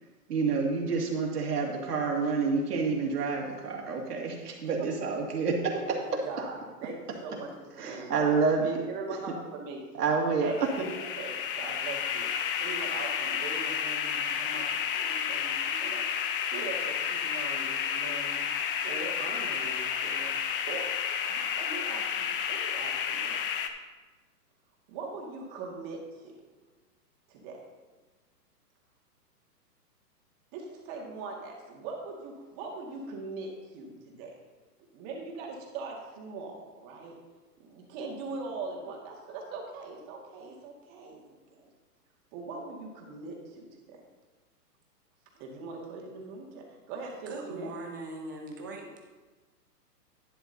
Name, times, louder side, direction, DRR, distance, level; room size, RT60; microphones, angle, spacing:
voice 1, 0.3-5.7 7.8-8.8 10.0-10.7, right 4 dB, 70° right, 0 dB, 2.3 m, -28 dB
voice 2, 5.7-8.4 8.9-9.8 10.4-10.6 10.9-12.3 12.6-14.7 14.9-16.0 16.3-18.5 18.8-20.3 20.7-20.9 21.3-23.4 24.9-26.3 27.3-27.6 30.5-34.3 34.9-37.1 37.6-41.7 42.3-44.0 45.3-47.7, right 3 dB, 30° right, -1 dB, 2.0 m, -41 dB
sound 1, 10.5-23.7, left 8 dB, 35° left, 0.6 m, -31 dB
voice 3, 47.2-49.0, right 2 dB, 15° right, 1 dB, 0.4 m, -40 dB
11.5 x 9.9 x 2.8 m, 1.3 s
hypercardioid pair, 140°, 49 cm